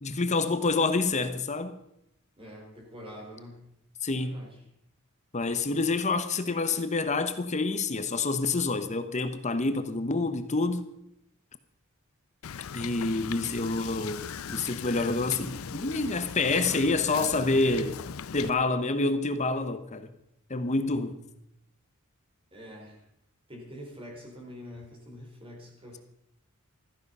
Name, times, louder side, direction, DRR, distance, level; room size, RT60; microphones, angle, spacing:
voice 1, 0.0-1.8 4.0-4.3 5.3-10.8 12.7-18.0 18.3-20.1 20.5-21.2, left 3 dB, 35° left, 1.0 m, -27 dB
voice 2, 2.4-3.7 4.2-4.7 22.5-23.0 23.5-26.0, equal, 25° right, 4.9 m, -45 dB
Wind / Boat Water vehicle, 12.4-18.5, left 7 dB, 75° left, 0.5 m, -39 dB
15.5 x 14.0 x 5.5 m
head